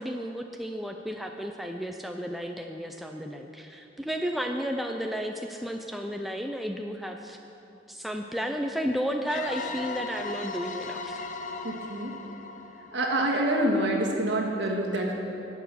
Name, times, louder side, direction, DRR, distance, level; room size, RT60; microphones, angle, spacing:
voice 1, 0.0-7.4 7.9-11.2, equal, ahead, 3 dB, 0.4 m, -33 dB
sound 1, 9.3-13.9, left 4 dB, 40° left, 0.6 m, -38 dB
voice 2, 11.6-12.2 12.9-15.1, right 1 dB, 65° right, -1 dB, 1.7 m, -26 dB
12.0 x 8.1 x 6.1 m, 2.8 s
head